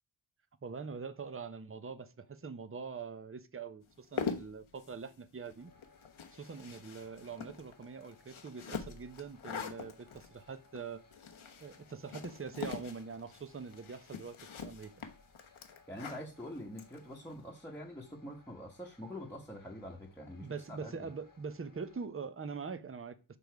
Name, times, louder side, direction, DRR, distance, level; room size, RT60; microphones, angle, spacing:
voice 1, 0.6-5.7 6.3-11.0 11.6-15.1 20.4-23.4, right 5 dB, 30° right, 0.7 m, -43 dB
sound 1, 3.9-17.4, left 6 dB, 85° left, 1.1 m, -44 dB
sound 2, 5.6-22.1, left 3 dB, 45° left, 1.3 m, -64 dB
voice 2, 15.9-21.1, equal, 5° left, 1.2 m, -45 dB
6.9 x 5.3 x 4.6 m
wide cardioid pair, 115°, 47 cm